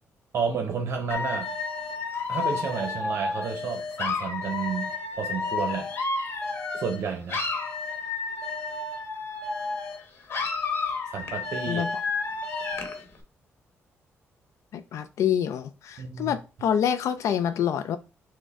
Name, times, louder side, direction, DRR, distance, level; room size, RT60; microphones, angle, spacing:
voice 1, 0.3-1.5 2.3-5.9 6.7-7.4 11.1-11.8 16.0-16.3, right 6 dB, 65° right, 0.8 m, -31 dB
Dog / Alarm, 1.1-7.0 7.3-10.0 10.3-13.0, left 4 dB, 50° left, 1.1 m, -31 dB
voice 2, 11.7-12.0 14.7-18.0, left 9 dB, 80° left, 0.4 m, -27 dB
6.2 x 2.2 x 3.5 m
cardioid pair, 120°, 5 cm